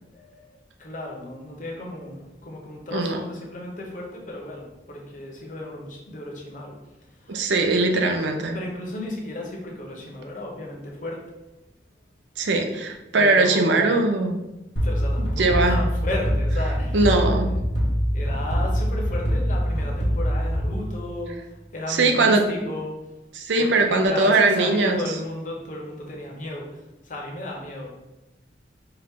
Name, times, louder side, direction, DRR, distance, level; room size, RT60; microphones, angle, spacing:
voice 1, 0.1-0.5 0.8-6.8 7.2-7.4 7.9-8.2 8.5-11.2 13.1-14.1 14.8-17.1 18.1-21.3 21.7-23.0 23.6-27.9, left 1 dB, 45° left, -1 dB, 0.9 m, -34 dB
voice 2, 2.9-3.2 7.3-8.6 12.4-14.4 15.2-15.8 16.9-17.5 21.9-22.5 23.3-25.0, right 3 dB, 80° right, 4 dB, 0.5 m, -20 dB
sound 1, 14.8-21.4, equal, 70° left, 0.9 m, -24 dB
4.6 x 2.5 x 3.5 m, 0.98 s
head